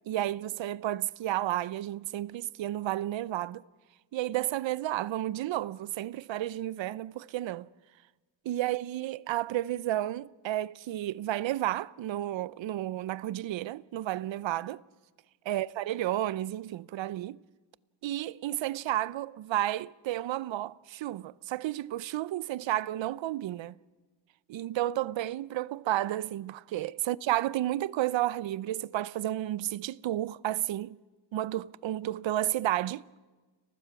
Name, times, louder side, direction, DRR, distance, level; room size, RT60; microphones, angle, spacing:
voice 1, 0.1-3.6 4.1-7.7 8.5-14.8 15.5-17.4 18.0-23.7 24.5-31.0 31.3-33.0, right 14 dB, 75° right, 0.6 m, -32 dB
30.0 x 16.0 x 5.9 m
wide cardioid pair, 120°, 46 cm